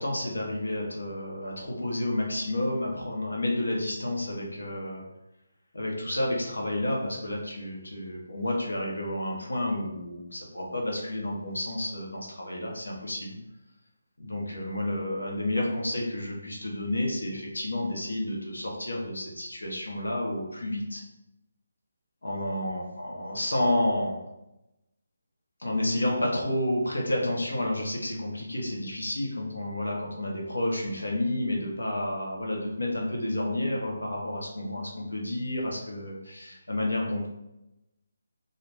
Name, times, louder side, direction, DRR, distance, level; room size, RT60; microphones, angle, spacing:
voice 1, 0.0-5.0 5.7-13.4 14.2-21.0 22.2-24.2 25.6-37.3, left 1 dB, 85° left, -2 dB, 0.8 m, -30 dB
2.4 x 2.1 x 3.3 m, 0.91 s
figure-of-eight pair, 160°, 0 cm